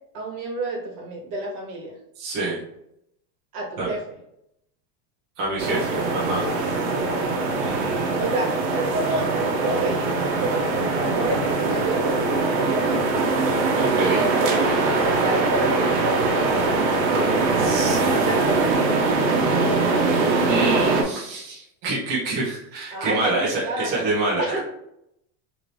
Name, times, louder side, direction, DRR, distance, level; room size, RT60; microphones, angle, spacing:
voice 1, 0.1-1.9 3.5-4.0 6.8-7.0 8.2-13.1 13.9-14.5 15.0-16.6 17.9-19.0 22.9-24.1 24.4-24.6, right 2 dB, 60° right, -1 dB, 1.2 m, -29 dB
voice 2, 2.2-2.6 3.8-3.9 5.4-6.5 7.6-8.2 13.5-14.2 17.6-18.2 20.4-24.6, right 2 dB, 25° right, -6 dB, 0.5 m, -27 dB
sound 1, 5.6-21.0, right 3 dB, 85° right, 0.9 m, -22 dB
2.8 x 2.6 x 3.1 m, 0.79 s
supercardioid pair, 170°, 50 cm